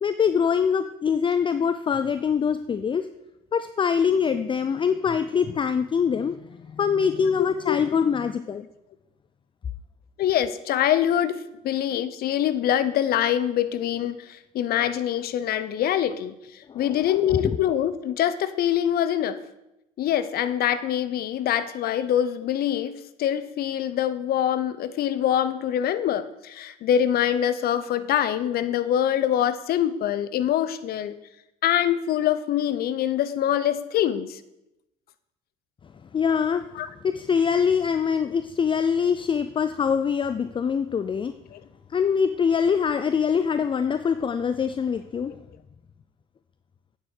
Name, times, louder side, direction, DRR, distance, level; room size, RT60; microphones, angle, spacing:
voice 1, 0.0-3.1 3.5-8.7 16.7-17.1 17.4-17.6 36.1-36.6 37.0-41.3 41.9-45.3, left 6 dB, 25° left, 11 dB, 0.5 m, -24 dB
voice 2, 7.4-7.8 10.2-11.4 11.6-14.2 14.5-16.4 16.7-19.4 20.0-31.2 31.6-34.4 36.8-36.9 41.5-41.6, left 10 dB, 55° left, 14 dB, 0.8 m, -24 dB
9.0 x 7.6 x 6.6 m, 0.89 s
hypercardioid pair, 65°, 19 cm